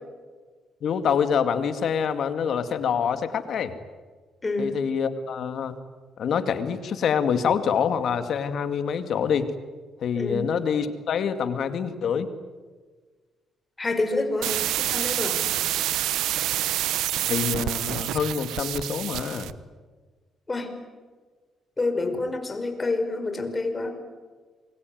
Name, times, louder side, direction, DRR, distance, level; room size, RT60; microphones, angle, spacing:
voice 1, 0.8-3.7 4.6-5.7 6.2-9.5 10.0-12.3 17.3-19.5, left 7 dB, 65° left, 10 dB, 2.2 m, -26 dB
voice 2, 4.4-4.7 10.1-10.5 13.8-15.4 20.5-20.7 21.8-24.0, left 2 dB, 25° left, 6 dB, 5.2 m, -28 dB
sound 1, 14.4-19.5, right 13 dB, 85° right, 0.9 m, -27 dB
27.5 x 23.0 x 9.3 m, 1.4 s
cardioid pair, 90°, 0 cm